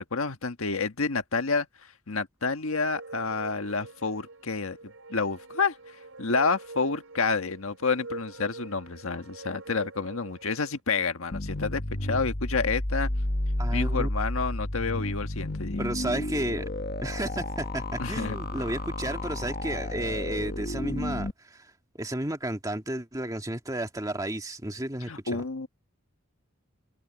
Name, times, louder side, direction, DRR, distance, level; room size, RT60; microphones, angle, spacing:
voice 1, 0.0-1.7 2.1-4.8 5.1-13.1 13.7-15.9 18.0-18.4 25.1-25.7, left 4 dB, 85° left, 1.5 m, -29 dB
sound 1, 2.7-10.8, right 3 dB, 75° right, 4.2 m, -45 dB
sound 2, 11.3-21.3, left 1 dB, 45° left, 1.5 m, -31 dB
voice 2, 13.6-14.1 15.8-16.7 17.0-21.7 22.0-25.4, right 1 dB, 15° right, 2.1 m, -32 dB
open air
head